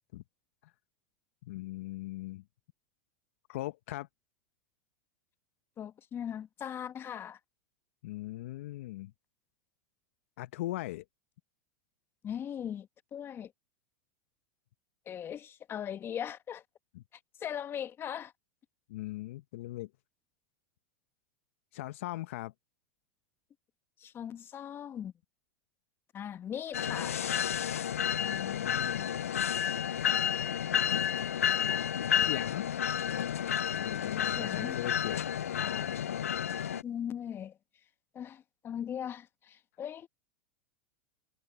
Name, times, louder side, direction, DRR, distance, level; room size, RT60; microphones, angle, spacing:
voice 1, 1.4-2.4 3.5-4.1 8.0-9.1 10.4-11.0 16.9-17.0 18.9-19.9 21.7-22.5 28.2-29.1 29.8-30.3 32.2-32.7 33.7-36.0, left 17 dB, 65° left, 1.1 m, -40 dB
voice 2, 5.8-7.4 12.2-13.5 15.1-16.6 17.4-18.3 24.0-25.1 26.1-27.2 34.2-34.8 36.8-37.6 38.1-40.1, left 9 dB, 30° left, 1.7 m, -39 dB
sound 1, 26.7-36.8, left 9 dB, 85° left, 0.4 m, -31 dB
hypercardioid pair, 95°, 8 cm